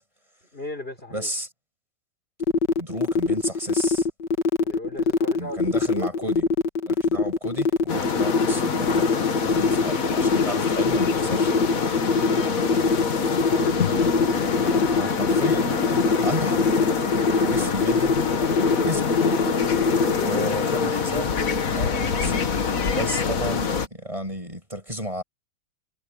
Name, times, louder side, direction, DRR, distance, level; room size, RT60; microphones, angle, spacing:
voice 1, 0.5-1.3 4.6-5.6 5.9-6.3 7.1-7.3 9.4-9.7 12.3-13.1 13.5-13.8 17.1-18.0 20.0-20.5 20.8-21.1, left 1 dB, 35° left, 4.2 m, -37 dB
voice 2, 1.1-1.5 2.8-4.1 5.4-6.5 6.8-9.1 9.5-11.7 14.6-16.6 17.4-18.1 18.8-19.2 20.2-21.4 21.7-22.4 22.9-25.2, right 1 dB, 20° right, 7.2 m, -32 dB
sound 1, 2.4-20.1, left 4 dB, 90° left, 2.1 m, -22 dB
sound 2, 7.9-23.9, left 5 dB, 55° left, 1.9 m, -25 dB
omnidirectional pair, 1.8 m